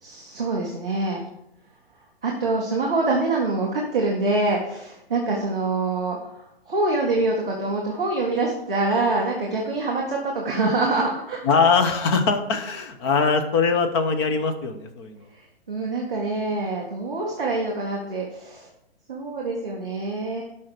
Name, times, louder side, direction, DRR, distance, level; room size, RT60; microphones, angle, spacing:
voice 1, 0.0-1.2 2.2-11.4 15.3-18.7 19.1-20.4, right 2 dB, 5° right, -9 dB, 0.3 m, -25 dB
voice 2, 11.4-15.2, left 5 dB, 25° left, 7 dB, 0.8 m, -22 dB
12.0 x 5.6 x 5.1 m, 0.80 s
hypercardioid pair, 160°, 31 cm